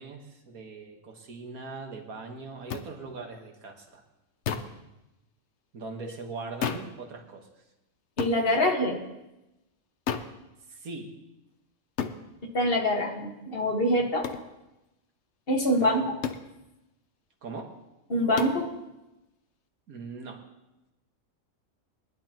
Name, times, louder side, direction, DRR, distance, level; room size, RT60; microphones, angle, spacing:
voice 1, 0.0-4.0 5.7-7.5 10.7-11.1 15.8-16.1 17.4-17.7 19.9-20.4, right 4 dB, 90° right, 3 dB, 1.9 m, -40 dB
sound 1, 2.7-2.9 4.4-4.8 6.6-7.0 8.2-8.4 10.1-10.4 12.0-12.2 14.2-14.5 16.2-16.5 18.4-18.6, left 7 dB, 60° left, 1.0 m, -31 dB
voice 2, 8.2-9.0 12.5-14.3 15.5-16.0 18.1-18.7, left 1 dB, 40° left, 1 dB, 1.8 m, -25 dB
21.5 x 11.0 x 3.0 m, 0.95 s
omnidirectional pair, 1.5 m